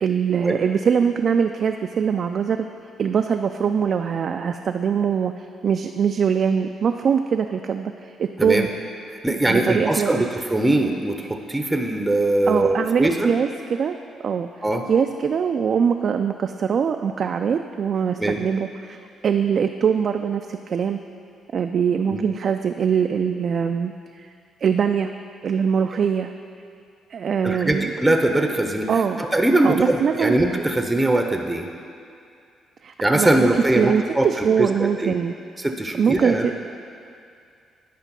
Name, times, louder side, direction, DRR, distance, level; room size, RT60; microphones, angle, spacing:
voice 1, 0.0-2.6 3.0-5.3 5.6-8.7 9.3-10.2 12.5-14.0 14.2-14.5 14.9-21.0 21.5-23.9 24.2-24.3 24.6-25.1 25.4-26.3 27.1-27.9 28.9-29.2 29.6-30.4 32.8-33.5 33.7-35.3 36.0-36.6, right 7 dB, 55° right, 5 dB, 0.3 m, -22 dB
voice 2, 9.1-13.3 14.6-14.9 18.2-18.4 22.1-22.2 27.4-28.9 29.2-31.7 33.0-35.1 35.6-36.5, right 1 dB, 10° right, 4 dB, 0.6 m, -21 dB
9.8 x 5.1 x 5.3 m, 2.4 s
cardioid pair, 90°, 0 cm